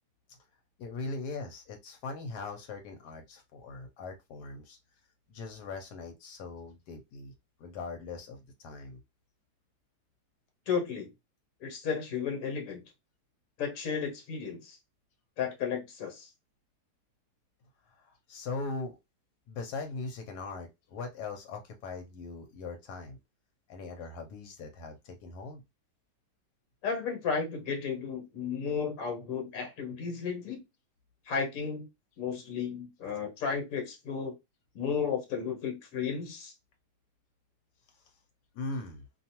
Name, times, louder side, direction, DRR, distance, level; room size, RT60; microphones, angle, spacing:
voice 1, 0.8-4.8 5.3-7.3 7.6-9.0 17.9-19.0 19.5-23.2 23.7-25.6 37.9-38.0 38.5-39.0, left 3 dB, 85° left, 1.2 m, -40 dB
voice 2, 10.7-11.1 11.6-12.8 13.6-14.8 15.4-16.3 26.8-30.6 31.3-31.9 32.2-34.4 34.7-36.5, left 6 dB, 65° left, 1.3 m, -33 dB
2.6 x 2.3 x 2.8 m
omnidirectional pair, 1.7 m